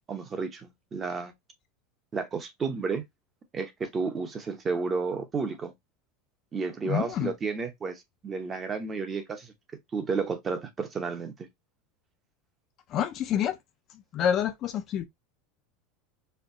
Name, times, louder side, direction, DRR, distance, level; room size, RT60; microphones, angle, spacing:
voice 1, 0.1-1.3 2.1-3.0 3.5-5.7 6.5-9.5 9.9-11.5, right 4 dB, 20° right, 0.8 m, -32 dB
voice 2, 6.8-7.3 12.9-13.6 14.1-15.1, left 9 dB, 35° left, 0.5 m, -27 dB
4.3 x 2.3 x 2.6 m
supercardioid pair, 155°, 0 cm